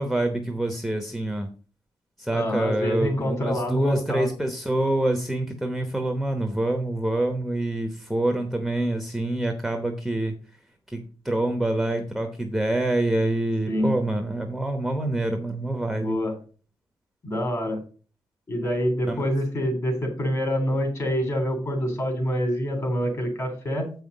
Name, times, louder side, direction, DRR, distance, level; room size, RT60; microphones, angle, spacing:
voice 1, 0.0-1.5 2.2-10.3 10.9-16.2 19.1-19.2, right 1 dB, ahead, 5 dB, 0.9 m, -26 dB
voice 2, 2.3-4.3 13.7-14.0 16.0-16.3 17.2-17.8 18.5-23.9, equal, 35° left, 4 dB, 3.3 m, -26 dB
7.6 x 5.7 x 5.3 m, 0.37 s
wide cardioid pair, 155°, 9 cm